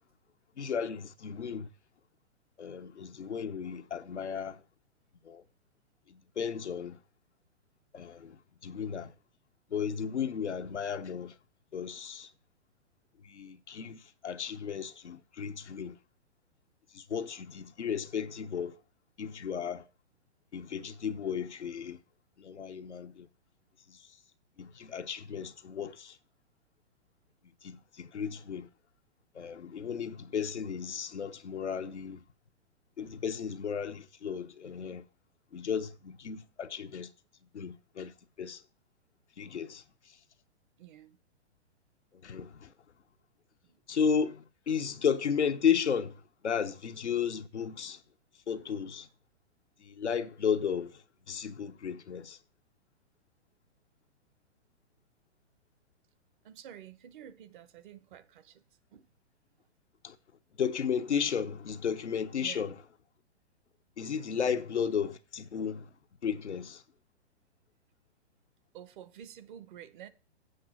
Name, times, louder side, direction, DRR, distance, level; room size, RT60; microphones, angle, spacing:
voice 1, 0.6-1.7 2.6-4.6 5.2-5.4 6.1-7.0 7.9-9.1 9.7-11.3 11.7-12.3 13.2-16.0 16.9-18.7 19.2-19.8 20.5-22.0 22.4-23.3 23.9-24.0 24.6-26.2 27.6-28.7 29.3-32.2 33.0-35.0 35.5-37.1 37.5-38.6 39.4-39.8 42.2-42.7 43.9-46.1 46.4-48.0 48.5-49.1 49.8-50.9 51.3-52.4 60.0-60.2 60.6-62.7 64.0-65.9 66.2-66.8, left 7 dB, 85° left, 0.8 m, -34 dB
voice 2, 40.8-41.2 43.6-43.8 56.4-58.6 58.9-59.1 62.4-62.7 64.4-64.6 68.7-70.1, right 10 dB, 45° right, 1.0 m, -50 dB
7.8 x 5.9 x 5.9 m
figure-of-eight pair, 120°, 34 cm